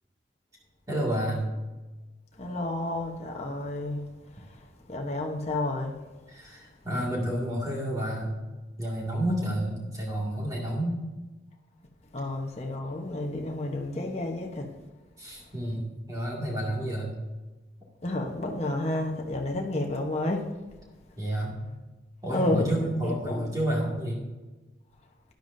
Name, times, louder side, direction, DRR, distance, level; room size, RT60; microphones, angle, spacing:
voice 1, 0.9-1.5 6.3-8.4 8.8-11.0 15.2-17.1 21.2-21.6 22.2-24.2, right 1 dB, 20° right, 2.2 m, -30 dB
voice 2, 2.4-4.0 4.9-5.9 12.1-14.7 18.0-20.5 22.3-22.7 23.0-23.5, left 2 dB, 35° left, 1.0 m, -30 dB
12.5 x 10.5 x 2.7 m
head